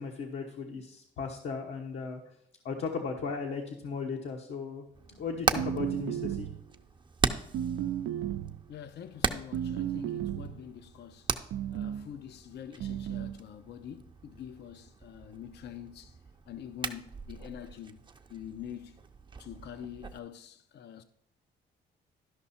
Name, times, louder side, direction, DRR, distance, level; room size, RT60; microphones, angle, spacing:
voice 1, 0.0-2.2 2.6-4.8 5.1-6.5, left 5 dB, 75° left, 1.1 m, -36 dB
Hammer, 4.9-20.2, right 5 dB, 25° right, 0.6 m, -38 dB
sound 1, 5.6-6.7 7.5-8.6 9.5-10.6 11.5-12.1 12.8-13.4, right 10 dB, 80° right, 0.5 m, -34 dB
voice 2, 8.7-11.3 11.7-16.2 16.5-18.0 18.3-19.0 19.4-21.0, left 9 dB, 60° left, 0.5 m, -45 dB
12.0 x 5.4 x 4.2 m
cardioid pair, 90°, 20 cm